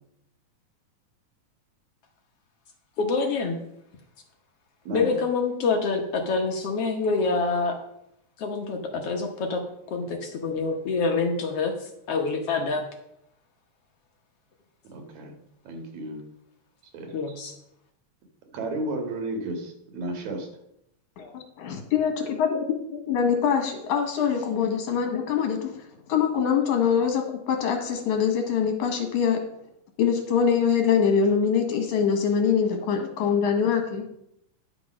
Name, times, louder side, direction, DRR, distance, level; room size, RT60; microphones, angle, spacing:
voice 1, 3.0-3.6 4.9-7.8 8.4-9.6 9.9-12.8 17.1-17.5, left 4 dB, 60° left, 3 dB, 1.8 m, -26 dB
voice 2, 4.8-5.2 14.9-15.3 15.6-16.2 16.9-17.2 18.5-20.5, right 1 dB, 70° right, 3 dB, 3.1 m, -33 dB
voice 3, 21.2-22.6 22.9-25.7 26.1-29.4 30.0-34.0, left 7 dB, 75° left, 4 dB, 3.0 m, -24 dB
10.5 x 6.0 x 6.2 m, 0.78 s
omnidirectional pair, 3.5 m